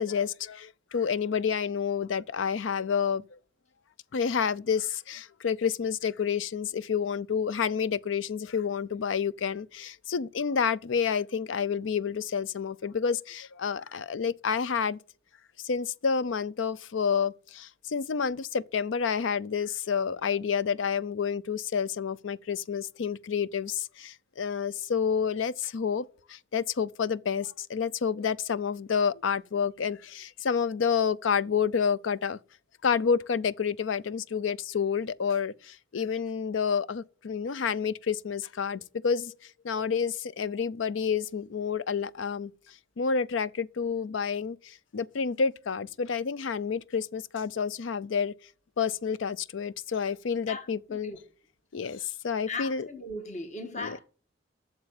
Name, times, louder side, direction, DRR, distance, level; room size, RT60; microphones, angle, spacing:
voice 1, 0.0-3.4 4.1-15.0 15.6-32.4 32.8-42.5 43.0-48.3 48.8-51.1 51.7-52.9 53.8-54.0, left 6 dB, 85° left, 0.5 m, -29 dB
voice 2, 50.5-51.2 52.5-54.0, left 2 dB, 40° left, 1.6 m, -38 dB
8.8 x 6.8 x 7.8 m
head